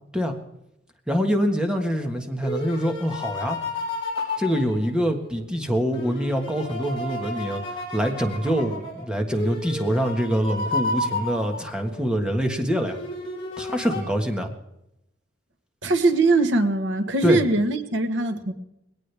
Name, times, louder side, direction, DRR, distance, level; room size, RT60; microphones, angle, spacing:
voice 1, 1.1-3.6 4.4-13.0 13.6-14.5 17.2-17.4, equal, 5° right, 4 dB, 1.5 m, -25 dB
sound 1, 1.9-5.4 5.9-12.1 12.9-14.0, left 2 dB, 25° left, 6.1 m, -32 dB
voice 2, 15.8-18.5, right 2 dB, 70° right, 8 dB, 1.3 m, -21 dB
21.0 x 18.0 x 3.5 m, 0.84 s
head